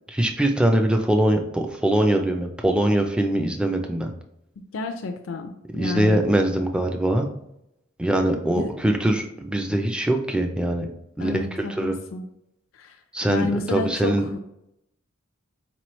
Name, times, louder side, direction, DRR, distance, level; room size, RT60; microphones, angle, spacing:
voice 1, 0.1-4.1 5.7-7.3 8.0-10.9 11.2-12.0 13.1-14.3, right 1 dB, 5° right, 4 dB, 0.3 m, -22 dB
voice 2, 4.7-6.3 11.2-12.2 12.7-13.0 13.3-14.4, left 3 dB, 75° left, 5 dB, 0.4 m, -30 dB
4.5 x 3.0 x 3.0 m, 0.82 s
head